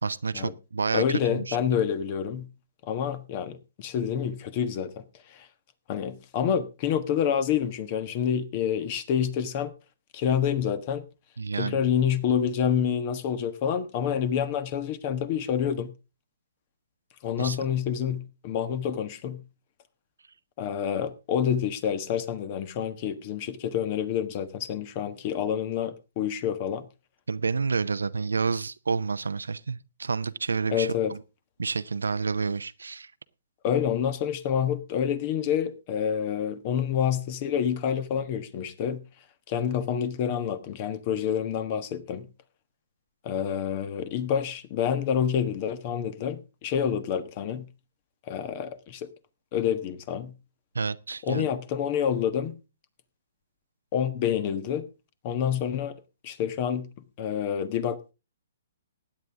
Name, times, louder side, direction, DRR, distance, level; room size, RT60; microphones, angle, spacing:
voice 1, 0.0-1.6 11.4-11.8 17.4-17.6 27.3-31.2 31.6-33.1 50.7-51.5, right 4 dB, 85° right, 0.6 m, -29 dB
voice 2, 0.9-2.5 2.8-5.0 5.3-5.5 5.9-9.7 10.1-11.0 11.6-15.9 17.2-19.4 20.6-26.8 30.7-31.1 33.6-39.0 39.5-42.3 43.2-47.6 48.3-49.1 49.5-50.3 51.2-52.5 53.9-54.8 55.2-56.0 56.2-56.9 57.2-58.0, left 8 dB, 40° left, 1.4 m, -28 dB
16.0 x 9.9 x 3.6 m
hypercardioid pair, 130°, 0 cm